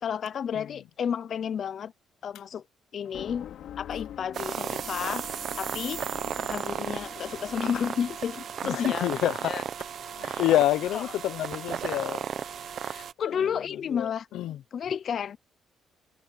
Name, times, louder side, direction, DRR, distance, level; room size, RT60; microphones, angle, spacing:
voice 1, 0.0-1.9 2.2-2.6 2.9-3.5 3.8-5.3 5.6-6.0 6.3-9.2 9.5-9.6 10.2-10.4 10.9-11.0 12.8-14.3 14.7-15.4, left 8 dB, 45° left, 0.5 m, -32 dB
sound 1, 3.0-8.7, left 10 dB, 70° left, 3.2 m, -44 dB
sound 2, 4.3-13.1, right 8 dB, 45° right, 0.8 m, -34 dB
sound 3, 6.4-12.9, left 2 dB, 10° left, 3.6 m, -57 dB
voice 2, 8.6-9.6 10.0-12.3 13.2-14.6, left 14 dB, 85° left, 0.9 m, -28 dB
cardioid pair, 165°, 0 cm